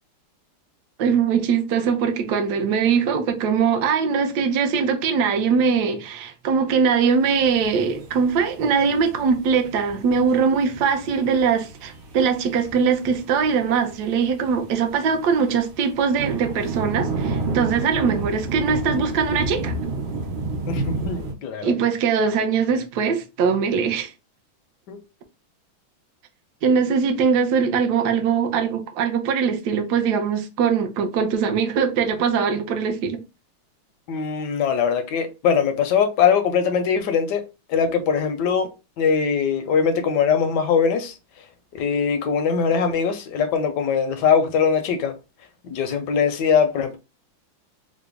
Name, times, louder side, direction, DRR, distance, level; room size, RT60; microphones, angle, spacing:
voice 1, 1.0-19.7 21.6-24.1 26.6-33.2, right 6 dB, 70° right, 1.1 m, -21 dB
sound 1, 7.1-21.3, right 3 dB, 90° right, 1.7 m, -31 dB
voice 2, 20.7-21.7 24.9-25.0 34.1-37.4 37.7-38.7 39.0-41.5 41.7-45.1 45.6-47.0, left 6 dB, 70° left, 1.0 m, -21 dB
3.9 x 2.1 x 3.4 m
omnidirectional pair, 2.2 m